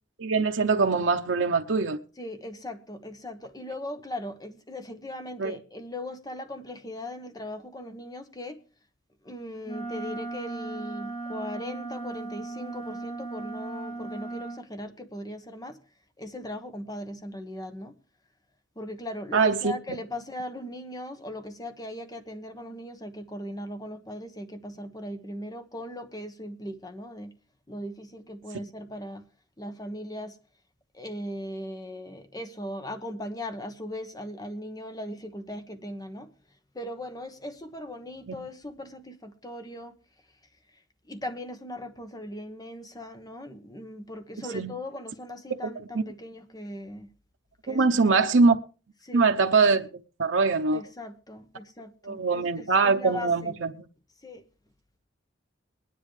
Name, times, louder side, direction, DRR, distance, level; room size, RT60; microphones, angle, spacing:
voice 1, 0.2-2.0 5.4-5.6 19.3-19.7 44.5-44.7 47.7-48.6 49.1-49.9 50.2-50.8 52.0-53.7, right 4 dB, 85° right, 0.7 m, -22 dB
voice 2, 2.2-8.6 9.2-15.8 16.2-18.0 18.8-27.4 27.7-29.3 29.6-30.4 30.9-36.3 36.7-40.0 41.0-47.1 47.6-48.2 49.0-49.3 50.7-53.6 54.2-54.4, left 1 dB, 20° left, 1.1 m, -39 dB
Wind instrument woodwind instrument, 9.6-14.6, right 2 dB, 40° left, 3.6 m, -36 dB
22.0 x 10.0 x 3.2 m
head